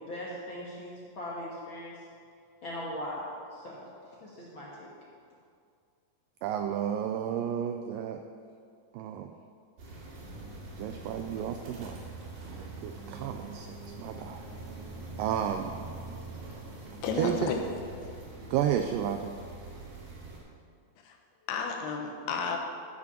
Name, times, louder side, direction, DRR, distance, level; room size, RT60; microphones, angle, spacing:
voice 1, 0.0-2.0 2.6-3.9 4.2-4.9, left 1 dB, 70° left, -6 dB, 1.2 m, -39 dB
voice 2, 6.4-8.2 8.9-9.3 10.8-12.0 12.5-14.5 15.2-15.7 17.1-17.5 18.5-19.3, right 9 dB, 90° right, 6 dB, 1.9 m, -32 dB
sound 1, 9.8-20.4, right 2 dB, 70° right, 3.9 m, -44 dB
voice 3, 17.0-17.6 18.0-18.1 18.4-18.5 21.0-21.2 21.5-22.6, left 5 dB, 85° left, 2 dB, 3.1 m, -32 dB
14.0 x 6.1 x 5.9 m, 2.3 s
omnidirectional pair, 4.4 m